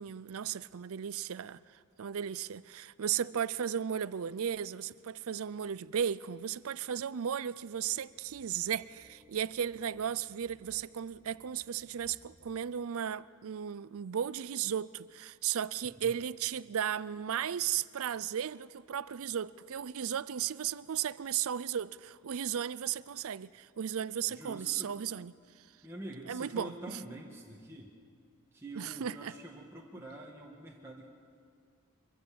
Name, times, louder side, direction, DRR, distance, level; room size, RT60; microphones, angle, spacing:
voice 1, 0.0-1.6 2.0-25.3 26.3-27.0 28.8-29.3, right 8 dB, 65° right, 0.5 m, -35 dB
sound 1, 7.1-12.8, equal, 10° left, 4.1 m, -65 dB
voice 2, 24.3-24.9 25.8-27.9 28.5-31.1, right 1 dB, 10° right, 1.7 m, -46 dB
24.0 x 15.0 x 8.6 m
head